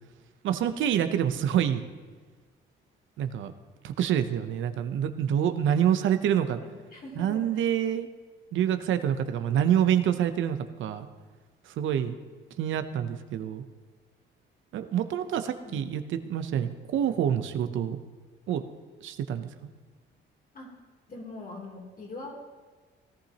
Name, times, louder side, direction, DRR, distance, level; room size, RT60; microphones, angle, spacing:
voice 1, 0.4-1.9 3.2-3.5 3.8-6.6 7.2-8.1 8.5-11.1 11.6-12.2 12.6-13.6 14.7-18.0 18.5-18.6 19.0-19.5, right 9 dB, 75° right, 10 dB, 0.7 m, -27 dB
voice 2, 6.6-7.7 15.6-15.9 20.5-20.8 21.1-22.3, left 2 dB, 45° left, -2 dB, 3.1 m, -43 dB
17.0 x 11.5 x 2.9 m, 1.4 s
cardioid pair, 90°, 20 cm